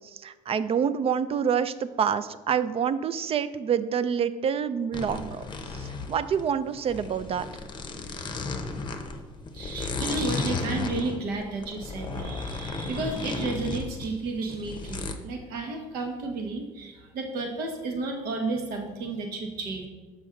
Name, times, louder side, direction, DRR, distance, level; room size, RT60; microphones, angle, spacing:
voice 1, 0.1-5.4 5.8-7.5, right 7 dB, 35° right, 14 dB, 0.4 m, -27 dB
sound 1, 4.9-15.1, left 3 dB, 30° left, 0.8 m, -34 dB
voice 2, 9.5-19.9, right 3 dB, 70° right, 3 dB, 1.2 m, -32 dB
6.3 x 5.2 x 3.8 m, 1.3 s
supercardioid pair, 80°, 16 cm